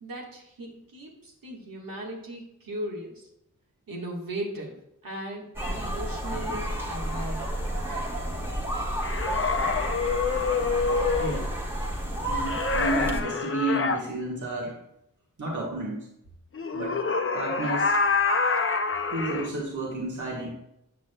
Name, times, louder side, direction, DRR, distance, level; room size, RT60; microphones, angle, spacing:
voice 1, 0.0-3.3 3.9-4.8 5.0-7.5, right 1 dB, 85° right, -1 dB, 1.5 m, -37 dB
sound 1, 5.6-13.2, right 1 dB, 5° right, 1.4 m, -31 dB
sound 2, 9.0-11.4 12.5-14.0 16.5-19.5, left 4 dB, 40° left, 0.6 m, -26 dB
voice 2, 11.2-11.5 12.3-14.8 15.4-16.1 16.7-17.0 17.3-18.0 19.1-20.5, right 2 dB, 60° right, -3 dB, 1.4 m, -31 dB
8.3 x 6.2 x 2.2 m, 0.81 s
cardioid pair, 45°, 34 cm